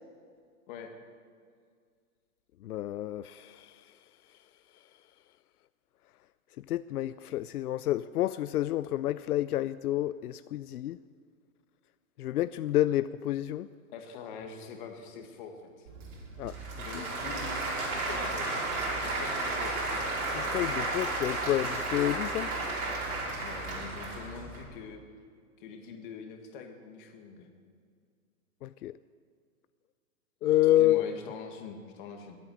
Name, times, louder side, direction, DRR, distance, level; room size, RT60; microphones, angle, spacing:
voice 1, 2.6-3.7 6.7-11.0 12.2-13.7 16.4-16.5 20.3-22.5 28.6-28.9 30.4-31.1, left 14 dB, 80° left, 15 dB, 0.6 m, -29 dB
voice 2, 13.9-15.9 16.8-17.6 17.8-18.6 19.0-19.7 23.4-25.0 25.6-27.5 30.8-32.4, left 6 dB, 35° left, 4 dB, 1.9 m, -44 dB
Applause / Crowd, 15.9-24.6, right 2 dB, 75° right, 5.7 m, -33 dB
21.0 x 8.8 x 7.8 m, 2.1 s
hypercardioid pair, 165°, 44 cm